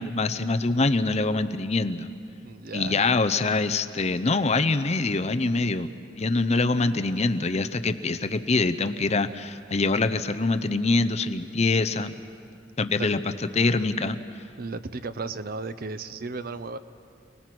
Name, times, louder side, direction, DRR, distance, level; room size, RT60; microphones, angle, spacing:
voice 1, 0.0-2.1 2.7-5.9 6.2-12.2 12.8-14.2, left 3 dB, 35° left, 10 dB, 0.7 m, -24 dB
voice 2, 2.4-3.0 13.0-13.1 14.6-16.8, right 3 dB, 50° right, 12 dB, 0.7 m, -35 dB
28.5 x 19.0 x 6.1 m, 2.4 s
head